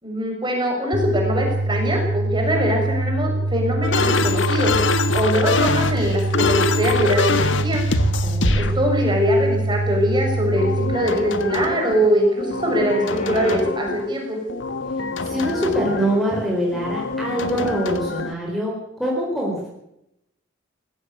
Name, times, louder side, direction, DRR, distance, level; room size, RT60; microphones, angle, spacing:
voice 1, 0.0-4.7 5.1-7.8 8.5-14.4, equal, 25° right, 1 dB, 6.5 m, -22 dB
sound 1, 0.9-10.9, right 2 dB, 60° right, 3.5 m, -24 dB
sound 2, 3.8-8.7 10.5-12.1 12.4-14.1 14.5-16.2 16.7-18.3, left 3 dB, 70° left, 1.6 m, -24 dB
voice 2, 8.2-8.8 15.2-19.7, equal, ahead, -2 dB, 4.5 m, -24 dB
sound 3, 10.7-13.6 16.5-17.8, equal, 35° left, 4.1 m, -37 dB
19.5 x 15.5 x 8.5 m, 0.85 s
head